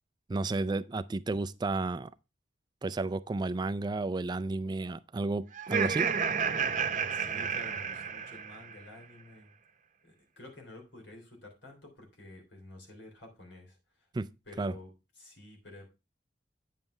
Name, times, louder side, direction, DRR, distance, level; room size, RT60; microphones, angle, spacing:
voice 1, 0.3-2.1 2.8-6.1 14.1-14.3 14.6-14.7, right 2 dB, 25° right, 0.3 m, -32 dB
Laughter, 5.5-8.8, right 6 dB, 45° right, 0.8 m, -31 dB
voice 2, 7.1-9.5 10.0-13.8 14.5-14.9 15.2-15.9, left 1 dB, 85° left, 3.4 m, -50 dB
9.2 x 7.2 x 3.3 m
head